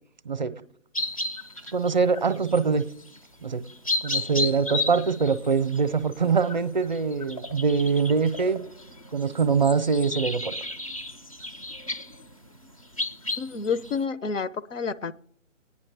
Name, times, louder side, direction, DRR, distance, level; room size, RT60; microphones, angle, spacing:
sound 1, 0.9-3.2 3.7-14.0, left 2 dB, 30° left, 0.4 m, -33 dB
voice 1, 1.7-2.8 3.4-3.6 4.0-8.6 9.1-10.5, right 5 dB, 35° right, 13 dB, 0.5 m, -23 dB
voice 2, 13.4-15.1, left 5 dB, 70° left, 14 dB, 0.7 m, -29 dB
25.5 x 9.7 x 3.3 m, 0.68 s
figure-of-eight pair, 155°, 39 cm